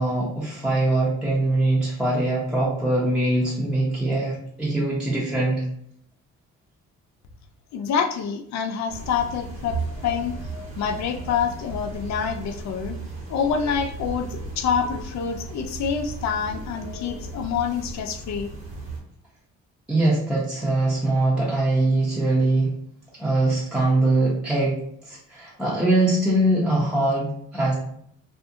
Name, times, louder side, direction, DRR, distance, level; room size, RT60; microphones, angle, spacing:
voice 1, 0.0-5.6 19.9-22.7 23.2-24.8 25.0-27.7, right 2 dB, 5° right, -6 dB, 0.7 m, -22 dB
voice 2, 7.7-10.3 10.8-13.0 13.3-18.5, left 7 dB, 65° left, 6 dB, 0.5 m, -27 dB
sound 1, 8.9-19.0, right 2 dB, 60° right, 1.1 m, -35 dB
2.5 x 2.4 x 2.7 m, 0.69 s
cardioid pair, 90°, 30 cm